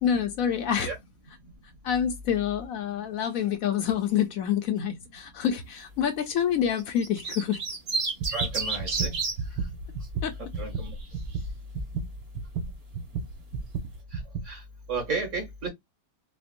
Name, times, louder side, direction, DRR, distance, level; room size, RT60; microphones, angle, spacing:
voice 1, 0.0-0.9 1.8-7.6 10.2-10.4, left 9 dB, 70° left, 0.9 m, -27 dB
sound 1, 6.8-9.3 10.6-11.0, right 4 dB, 70° right, 1.9 m, -30 dB
sound 2, 8.2-14.5, right 4 dB, 90° right, 1.1 m, -33 dB
voice 2, 8.3-9.1 10.6-10.9 14.5-14.6 14.9-15.7, right 3 dB, 50° right, 1.8 m, -32 dB
4.3 x 2.0 x 2.4 m
omnidirectional pair, 1.6 m